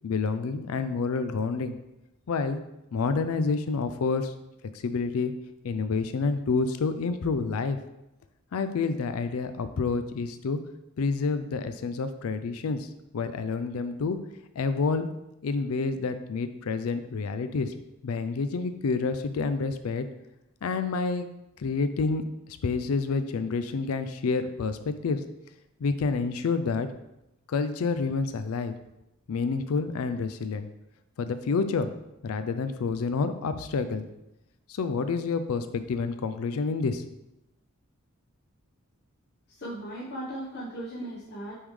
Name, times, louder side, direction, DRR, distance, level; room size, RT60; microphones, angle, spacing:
voice 1, 0.0-1.7 2.3-2.6 2.9-4.3 4.8-5.3 5.6-7.8 8.5-10.6 11.0-12.9 13.1-14.2 14.6-15.1 15.4-17.7 18.0-20.1 20.6-21.3 21.6-22.2 22.6-25.2 25.8-26.9 27.5-28.7 29.3-30.7 31.2-31.9 32.2-34.0 34.7-37.0, left 4 dB, 80° left, 10 dB, 0.4 m, -28 dB
voice 2, 39.6-41.6, right 1 dB, 50° left, -7 dB, 1.1 m, -37 dB
8.6 x 3.5 x 3.2 m, 0.90 s
head